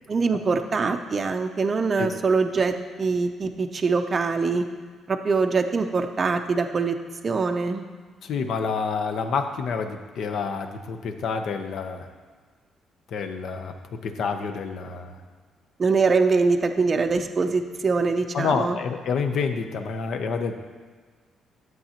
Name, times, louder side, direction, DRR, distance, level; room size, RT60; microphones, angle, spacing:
voice 1, 0.1-4.6 5.1-7.0 7.2-7.8 15.8-18.8, right 4 dB, 30° right, 5 dB, 0.5 m, -23 dB
voice 2, 8.2-12.1 13.1-15.2 18.3-20.6, left 5 dB, 65° left, 7 dB, 0.7 m, -28 dB
12.5 x 7.7 x 2.9 m, 1.5 s
cardioid pair, 130°, 0 cm